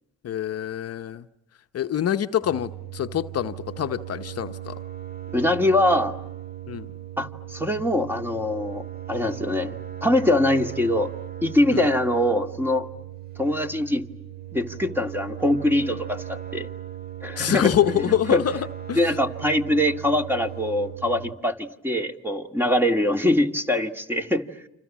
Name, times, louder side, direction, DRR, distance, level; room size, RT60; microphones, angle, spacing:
voice 1, 0.2-1.2 1.7-4.8 6.7-6.9 11.7-11.9 17.4-19.2, left 10 dB, 55° left, 0.9 m, -25 dB
sound 1, 2.4-21.3, right 11 dB, 30° right, 2.3 m, -37 dB
voice 2, 5.3-6.2 7.2-11.1 11.4-12.9 13.4-14.0 14.5-16.7 17.2-17.8 18.1-18.4 18.9-24.5, left 1 dB, 5° right, 2.1 m, -23 dB
29.5 x 27.0 x 7.4 m
cardioid pair, 90°, 30 cm